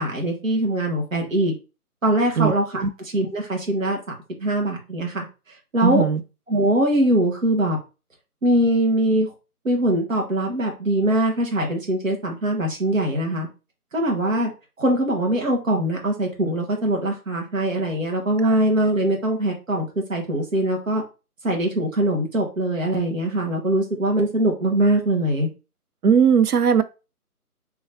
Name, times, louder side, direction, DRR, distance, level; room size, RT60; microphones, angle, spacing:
voice 1, 0.0-1.5 2.0-5.3 5.7-6.0 6.5-7.8 8.4-9.3 9.6-13.5 13.9-14.5 14.8-21.0 21.4-25.5, right 1 dB, 60° right, 1.3 m, -22 dB
voice 2, 5.8-6.2 18.4-18.6 26.0-26.8, right 7 dB, 80° right, 0.6 m, -18 dB
3.5 x 3.0 x 2.6 m
figure-of-eight pair, 155°, 46 cm